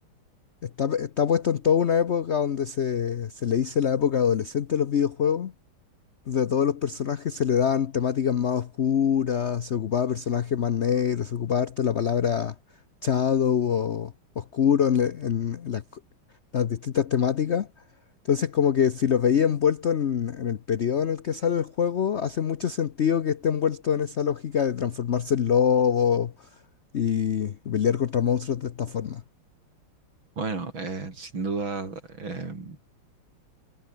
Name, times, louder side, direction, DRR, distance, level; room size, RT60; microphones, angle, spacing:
voice 1, 0.6-5.5 6.3-12.5 13.0-15.8 16.5-17.7 18.3-26.3 26.9-29.2, left 8 dB, 85° left, 0.6 m, -24 dB
voice 2, 30.4-32.8, right 3 dB, 70° right, 5.4 m, -32 dB
omnidirectional pair, 2.3 m